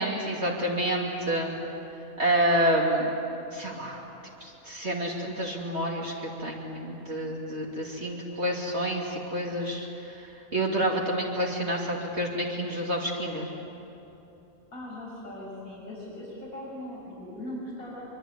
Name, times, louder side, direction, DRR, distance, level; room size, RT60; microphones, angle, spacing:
voice 1, 0.0-1.6 2.2-3.1 3.5-4.0 4.4-13.5, right 1 dB, 50° right, -3 dB, 3.1 m, -28 dB
voice 2, 14.7-18.0, left 1 dB, 75° left, -4 dB, 6.7 m, -39 dB
25.0 x 24.0 x 9.4 m, 2.9 s
omnidirectional pair, 1.5 m